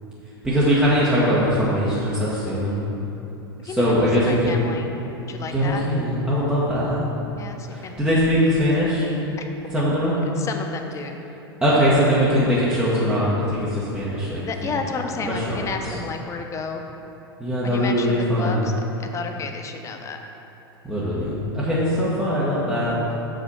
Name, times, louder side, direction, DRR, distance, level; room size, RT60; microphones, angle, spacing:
voice 1, 0.4-2.8 3.6-4.6 5.5-7.0 7.7-9.1 9.7-10.1 11.6-14.4 15.2-15.7 17.4-18.7 20.8-22.9, equal, 10° right, -9 dB, 1.4 m, -21 dB
voice 2, 3.7-4.9 5.3-5.9 7.4-8.0 8.7-8.8 9.8-9.9 10.4-11.2 14.5-16.8 17.6-18.7 19.0-20.2, left 4 dB, 25° left, 4 dB, 0.7 m, -31 dB
6.8 x 5.1 x 5.5 m, 3.0 s
figure-of-eight pair, 95°, 13 cm